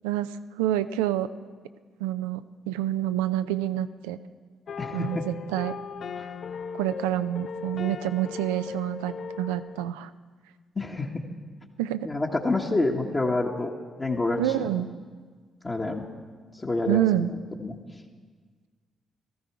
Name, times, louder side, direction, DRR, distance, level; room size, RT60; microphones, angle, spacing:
voice 1, 0.0-1.3 2.0-4.2 4.9-5.7 6.8-10.1 11.8-12.1 14.4-14.9 16.9-17.3, right 13 dB, 85° right, 11 dB, 0.4 m, -27 dB
sound 1, 4.7-9.9, left 6 dB, 55° left, 0.5 m, -37 dB
voice 2, 4.8-5.2 6.2-6.3 10.7-11.2 12.0-13.7 14.0-14.7 15.6-16.1 16.5-17.3 17.6-17.8, left 2 dB, 30° left, -2 dB, 1.3 m, -28 dB
15.0 x 14.0 x 4.7 m, 1.5 s
hypercardioid pair, 50°, 0 cm